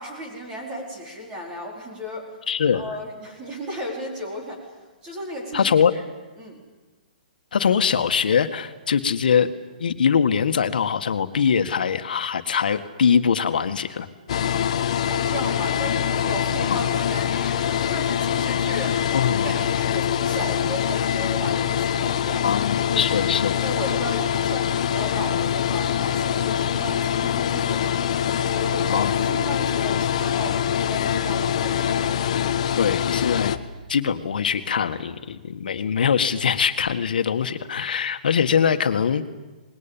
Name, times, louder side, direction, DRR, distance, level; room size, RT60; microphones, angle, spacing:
voice 1, 0.0-2.3 2.7-4.7 5.0-6.0 6.4-6.6 15.1-19.1 19.4-23.0 23.6-27.9 28.3-32.2, equal, 15° right, 0 dB, 4.5 m, -34 dB
voice 2, 2.5-2.8 5.5-5.9 7.5-9.5 9.8-14.1 16.7-16.8 19.1-19.6 22.4-23.6 28.9-29.1 32.8-33.5 33.9-39.3, left 7 dB, 70° left, 9 dB, 1.9 m, -22 dB
sound 1, 14.3-33.6, left 9 dB, 40° left, 1.2 m, -24 dB
26.0 x 21.0 x 9.2 m, 1.2 s
hypercardioid pair, 180°, 5 cm